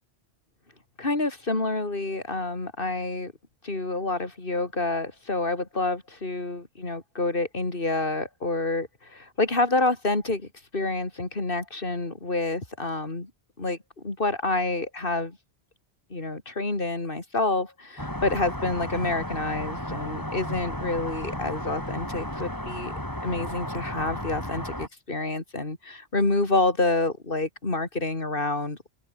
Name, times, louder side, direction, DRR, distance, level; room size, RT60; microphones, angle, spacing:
voice 1, 1.0-3.3 3.6-13.3 13.6-13.8 14.0-15.4 16.1-22.9 23.2-28.9, left 2 dB, 55° left, 3.7 m, -28 dB
sound 1, 18.0-24.9, equal, 15° left, 6.9 m, -34 dB
omnidirectional pair, 1.1 m